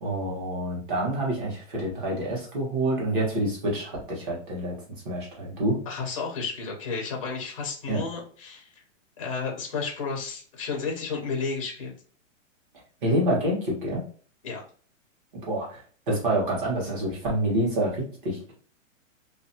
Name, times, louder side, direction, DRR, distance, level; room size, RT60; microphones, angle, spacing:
voice 1, 0.0-4.7 5.0-5.8 7.9-8.0 13.0-14.0 15.4-18.5, right 1 dB, 40° right, -3 dB, 1.1 m, -27 dB
voice 2, 5.9-8.7 9.2-11.9 14.4-14.6, left 4 dB, 25° left, -1 dB, 0.4 m, -32 dB
2.6 x 2.2 x 2.6 m, 0.44 s
hypercardioid pair, 180°, 39 cm